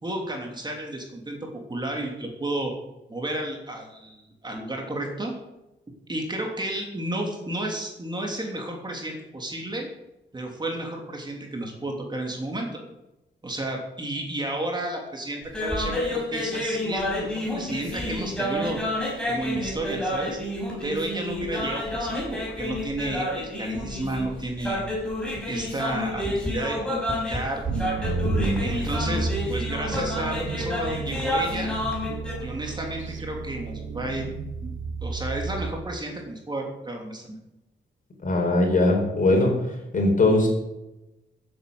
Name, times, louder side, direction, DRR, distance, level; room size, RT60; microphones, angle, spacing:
voice 1, 0.0-1.4 1.7-2.7 3.1-5.3 6.1-9.9 10.3-12.7 13.4-18.8 19.2-20.4 20.8-24.8 25.5-27.6 28.6-31.8 32.4-34.3 34.6-34.7 35.0-37.4, right 1 dB, 20° right, 1 dB, 3.0 m, -32 dB
sound 1, 15.4-32.3, left 1 dB, 5° left, 5.6 m, -30 dB
sound 2, 27.6-35.8, right 4 dB, 75° right, 2.2 m, -32 dB
voice 2, 28.2-28.6 38.2-39.5 39.9-40.5, left 2 dB, 45° left, 2 dB, 5.0 m, -20 dB
15.0 x 8.8 x 7.8 m, 0.94 s
wide cardioid pair, 140°, 20 cm